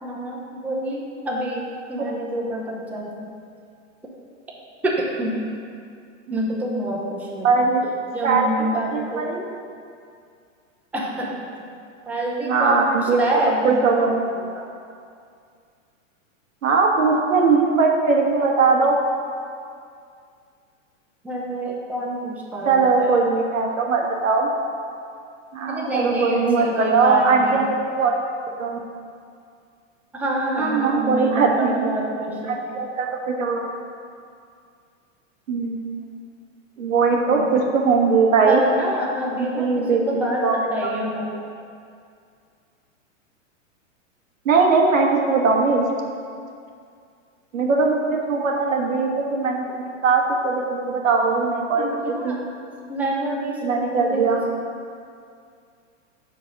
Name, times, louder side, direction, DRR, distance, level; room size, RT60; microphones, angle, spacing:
voice 1, 0.0-3.3 4.8-5.4 6.3-7.7 8.1-9.3 10.9-11.4 12.1-13.7 21.2-23.2 25.7-27.7 30.1-32.6 37.2-37.5 38.5-41.3 51.8-52.4 52.9-54.5, right 1 dB, 5° right, -3 dB, 0.7 m, -27 dB
voice 2, 7.4-7.9 8.2-8.6 8.9-9.4 12.5-13.2 13.6-14.7 16.6-18.9 22.7-24.5 25.5-28.1 28.4-28.8 30.6-31.9 32.5-33.7 35.5-35.8 36.8-38.6 39.4-40.6 40.8-40.9 44.4-45.9 47.5-51.9 52.2-52.4 53.6-54.4, right 4 dB, 90° right, 0 dB, 1.2 m, -20 dB
5.3 x 4.8 x 6.2 m, 2.3 s
hypercardioid pair, 135°, 39 cm